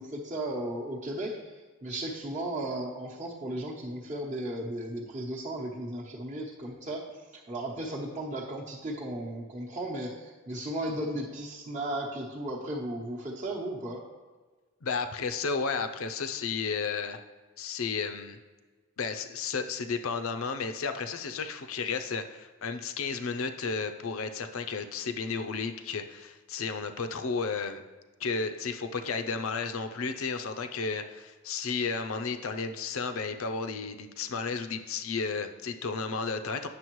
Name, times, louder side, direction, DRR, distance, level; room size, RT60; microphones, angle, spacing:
voice 1, 0.0-1.4 1.8-7.1 7.3-14.0, right 1 dB, 35° right, -4 dB, 0.9 m, -35 dB
voice 2, 14.8-17.2 17.6-18.4 19.0-27.8 28.2-36.7, left 5 dB, 75° left, 8 dB, 0.6 m, -33 dB
9.5 x 6.6 x 3.1 m, 1.3 s
head